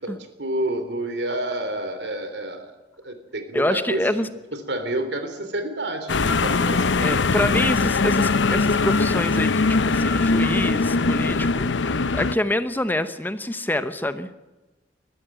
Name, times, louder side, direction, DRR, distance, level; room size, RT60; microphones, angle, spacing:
voice 1, 0.0-2.7 3.0-4.0 4.7-7.4, right 1 dB, 70° right, 8 dB, 3.3 m, -29 dB
voice 2, 3.5-4.3 7.0-14.3, left 1 dB, 10° left, 11 dB, 0.8 m, -26 dB
sound 1, 6.1-12.4, left 3 dB, 90° left, 0.7 m, -21 dB
21.5 x 14.0 x 9.0 m, 1.1 s
head